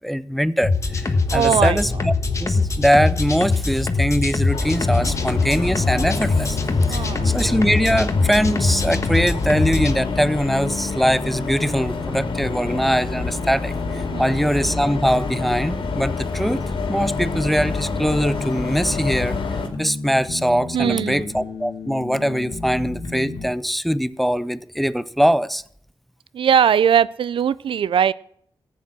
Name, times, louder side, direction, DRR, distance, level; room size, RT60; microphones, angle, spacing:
voice 1, 0.0-2.1 2.4-6.6 6.9-16.6 16.9-19.4 19.8-25.6, equal, ahead, 0.4 m, -22 dB
sound 1, 0.6-9.9, left 3 dB, 35° left, 1.3 m, -22 dB
voice 2, 1.3-1.8 6.9-7.4 14.1-14.4 20.7-21.3 26.3-28.1, right 8 dB, 75° right, 0.4 m, -20 dB
sound 2, 4.5-19.7, left 4 dB, 70° left, 2.3 m, -29 dB
sound 3, 4.8-23.5, left 3 dB, 50° left, 1.7 m, -32 dB
14.5 x 8.6 x 6.1 m
wide cardioid pair, 120°, 9 cm